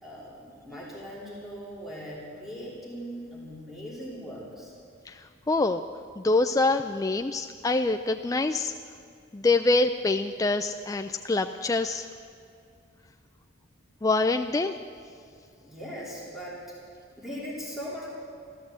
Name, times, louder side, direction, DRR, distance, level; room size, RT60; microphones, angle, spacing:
voice 1, 0.0-4.7 15.6-16.6 17.1-18.1, equal, ahead, -6 dB, 3.2 m, -39 dB
voice 2, 5.1-5.8 6.2-8.7 9.3-12.1 14.0-14.8, left 3 dB, 15° left, 6 dB, 0.3 m, -25 dB
14.0 x 13.0 x 8.0 m, 2.4 s
head